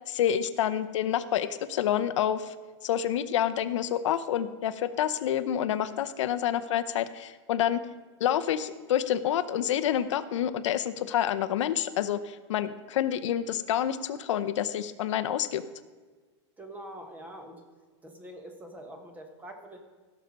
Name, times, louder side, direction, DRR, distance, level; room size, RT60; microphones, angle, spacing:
voice 1, 0.1-2.5 2.8-7.8 8.2-15.6, left 10 dB, 80° left, 12 dB, 0.7 m, -28 dB
voice 2, 16.6-17.6 18.0-19.8, right 1 dB, 10° right, 5 dB, 1.2 m, -44 dB
16.5 x 6.6 x 5.3 m, 1.4 s
supercardioid pair, 160°, 15 cm